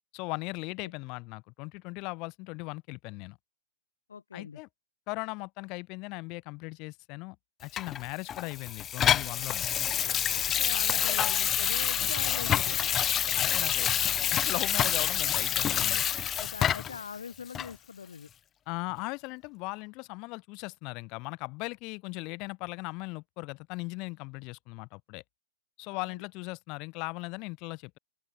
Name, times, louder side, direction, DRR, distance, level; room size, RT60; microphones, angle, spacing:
voice 1, 0.1-3.4 4.3-4.7 5.1-7.4 7.6-9.7 11.2-11.3 12.0-12.1 13.3-13.9 14.3-16.0 18.7-25.2 25.8-28.0, left 27 dB, 40° left, 2.3 m, -38 dB
voice 2, 4.1-4.6 10.3-12.9 16.4-18.3 25.9-26.2, left 6 dB, 75° left, 1.5 m, -41 dB
Water tap faucet / Sink (filling or washing), 7.8-17.0 17.5-17.7, left 10 dB, 25° left, 0.7 m, -27 dB
open air
figure-of-eight pair, 115°, 0 cm